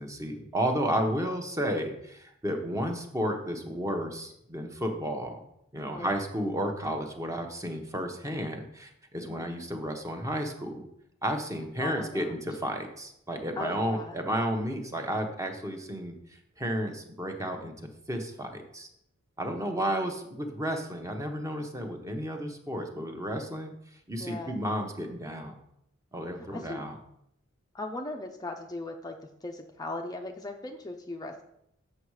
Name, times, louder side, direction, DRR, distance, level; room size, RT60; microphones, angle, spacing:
voice 1, 0.0-5.4 5.7-10.9 11.2-16.1 16.6-18.9 19.4-23.7 24.1-25.5 26.1-26.9, equal, 15° right, 4 dB, 1.0 m, -32 dB
voice 2, 11.8-12.3 13.6-14.2 24.2-24.6 26.3-26.8 27.7-31.4, left 2 dB, 20° left, 3 dB, 0.6 m, -38 dB
7.8 x 6.4 x 4.7 m, 0.76 s
head